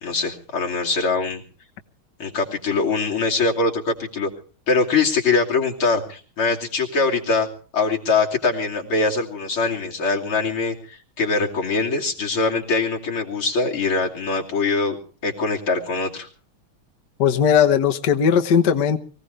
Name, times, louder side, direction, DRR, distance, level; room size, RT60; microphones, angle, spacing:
voice 1, 0.0-1.4 2.2-4.3 4.7-7.5 7.7-15.0 15.2-16.3, left 4 dB, 85° left, -1 dB, 3.6 m, -22 dB
voice 2, 17.2-19.0, left 7 dB, 60° left, 5 dB, 1.6 m, -18 dB
24.0 x 16.5 x 3.3 m, 0.40 s
omnidirectional pair, 2.3 m